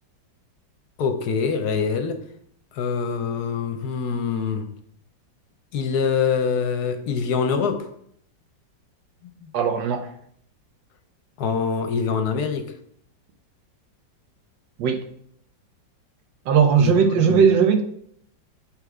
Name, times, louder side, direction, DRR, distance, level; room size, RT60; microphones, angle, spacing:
voice 1, 1.0-2.2 2.7-4.7 5.7-7.9 9.4-9.5 11.4-12.7 16.8-17.4, left 6 dB, 65° left, 1.1 m, -24 dB
voice 2, 9.5-10.1 14.8-15.0 16.5-17.8, right 6 dB, 75° right, 1.5 m, -18 dB
8.6 x 3.5 x 4.8 m
omnidirectional pair, 2.0 m